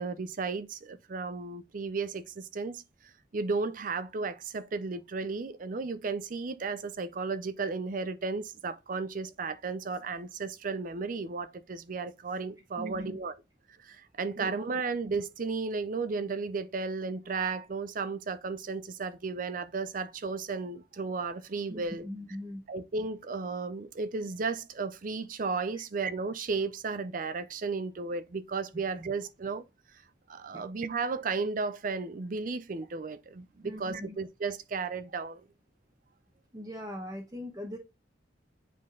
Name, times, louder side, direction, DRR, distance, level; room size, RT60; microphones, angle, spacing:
voice 1, 0.0-2.8 3.3-13.3 13.8-22.1 22.7-29.6 30.3-35.4, right 4 dB, 45° right, 0.5 m, -34 dB
voice 2, 12.8-13.2 14.4-14.5 21.7-22.6 25.7-25.8 30.5-30.6 33.6-34.2 36.5-37.8, equal, 20° right, 1.0 m, -40 dB
7.5 x 3.8 x 3.8 m
head